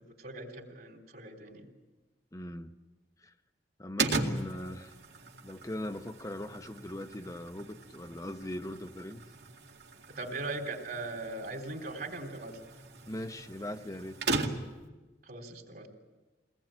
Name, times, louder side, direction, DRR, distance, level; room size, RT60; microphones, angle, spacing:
voice 1, 0.2-1.7 10.1-12.6 15.3-15.9, right 2 dB, 55° right, 3 dB, 3.5 m, -39 dB
voice 2, 2.3-2.7 3.2-3.3 3.8-4.9 5.4-9.2 13.1-14.2, left 1 dB, 20° left, 6 dB, 0.7 m, -40 dB
sound 1, 4.0-14.9, right 3 dB, 75° right, 2.2 m, -38 dB
23.5 x 19.0 x 8.9 m, 1.2 s
head